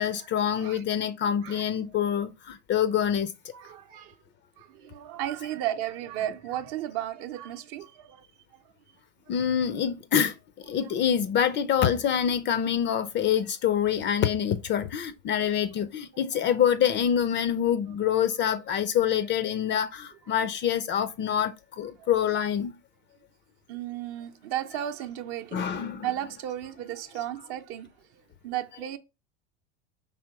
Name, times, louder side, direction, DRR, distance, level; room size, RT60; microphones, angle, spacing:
voice 1, 0.0-3.3 9.3-22.7 25.5-26.2 27.1-27.2 28.8-28.9, left 9 dB, 30° left, 0.4 m, -26 dB
voice 2, 3.5-4.2 4.6-8.3 8.5-8.6 15.5-15.6 22.0-22.1 23.7-29.0, right 12 dB, 55° right, 0.7 m, -35 dB
4.8 x 3.0 x 2.8 m
hypercardioid pair, 95°, 39 cm